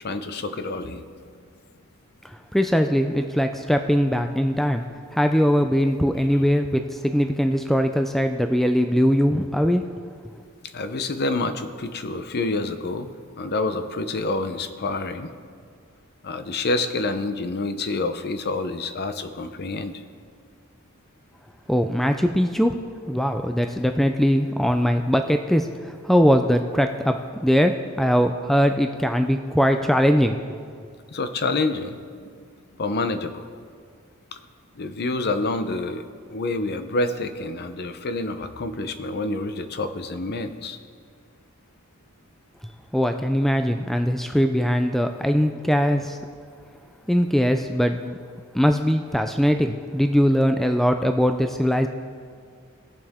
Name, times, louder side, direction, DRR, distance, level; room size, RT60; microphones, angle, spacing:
voice 1, 0.0-1.3 10.7-15.3 16.2-20.0 31.1-32.3 32.8-33.5 34.3-34.4 34.8-40.8, left 2 dB, 50° left, 9 dB, 0.7 m, -28 dB
voice 2, 2.5-4.8 5.1-9.8 21.7-22.7 23.1-30.4 42.9-46.2 47.1-48.2 48.5-51.9, equal, ahead, 6 dB, 0.3 m, -21 dB
20.0 x 6.8 x 3.6 m, 2.1 s
head